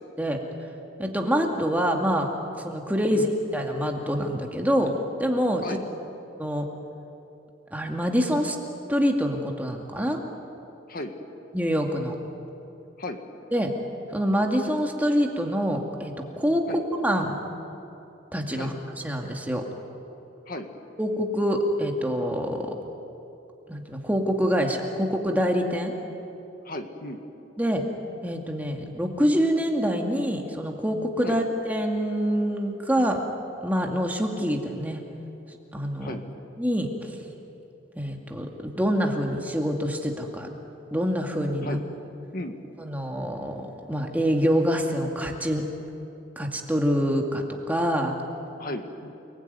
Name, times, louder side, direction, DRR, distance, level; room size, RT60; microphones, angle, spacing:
voice 1, 1.0-2.3 2.6-3.3 3.5-4.9 5.2-5.8 6.4-6.6 7.7-8.6 8.9-10.2 11.5-12.1 13.5-13.7 14.1-16.1 16.4-17.4 18.3-19.6 21.0-22.7 23.7-25.9 27.6-27.8 28.2-33.2 33.6-35.0 35.7-36.2 36.6-37.1 38.0-40.5 40.9-41.8 42.8-45.6 46.4-48.1, equal, 10° right, 1 dB, 2.2 m, -25 dB
voice 2, 26.7-27.2 31.2-31.4 36.0-36.2 41.6-41.8 42.3-42.6 48.6-49.1, left 1 dB, 45° left, 5 dB, 1.8 m, -35 dB
29.5 x 20.5 x 9.5 m, 3.0 s
head